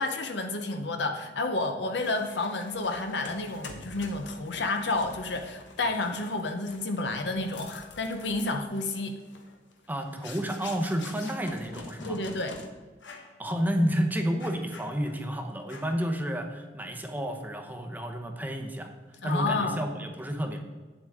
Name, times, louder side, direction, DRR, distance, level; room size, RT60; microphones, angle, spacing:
voice 1, 0.0-9.2 12.0-12.6 19.2-19.8, left 2 dB, 70° left, 6 dB, 0.8 m, -30 dB
sound 1, 2.0-12.7 13.0-13.4 13.7-13.9 14.4-15.3 15.7-16.1, left 3 dB, 85° left, 1.1 m, -47 dB
voice 2, 9.9-12.2 13.4-20.6, equal, 10° right, 4 dB, 0.8 m, -30 dB
8.8 x 7.6 x 3.6 m, 1.3 s
head